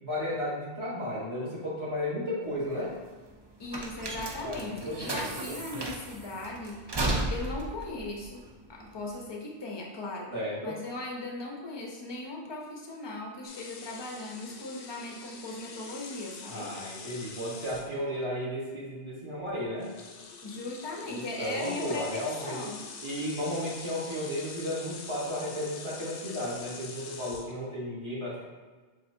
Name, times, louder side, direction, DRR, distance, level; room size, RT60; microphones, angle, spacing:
voice 1, 0.0-2.9 4.4-5.6 10.3-10.8 16.5-19.9 21.1-22.7 23.0-28.4, equal, 25° right, -7 dB, 1.2 m, -34 dB
sound 1, 2.4-9.2, right 2 dB, 40° right, 0.3 m, -35 dB
voice 2, 3.6-7.0 7.3-8.4 8.7-10.3 10.6-16.7 20.4-22.9, left 2 dB, 30° left, -1 dB, 0.6 m, -38 dB
sound 2, 13.5-18.2 19.4-19.5 19.8-27.7, left 4 dB, 75° left, 0.8 m, -45 dB
7.2 x 2.5 x 2.6 m, 1.4 s
omnidirectional pair, 1.2 m